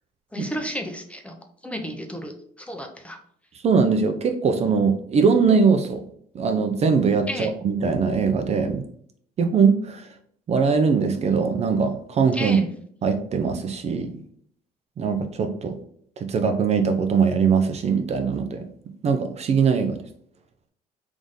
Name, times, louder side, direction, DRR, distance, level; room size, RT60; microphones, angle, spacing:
voice 1, 0.3-1.3 1.6-2.3 2.6-3.2 7.3-7.5 12.3-12.7, equal, 5° left, 4 dB, 0.6 m, -32 dB
voice 2, 3.6-6.0 6.3-8.8 9.4-10.1 10.5-12.6 13.0-14.1 15.0-15.8 16.2-18.7 19.0-20.0, right 5 dB, 40° right, 7 dB, 0.5 m, -21 dB
3.6 x 2.6 x 3.6 m, 0.64 s
cardioid pair, 110°, 17 cm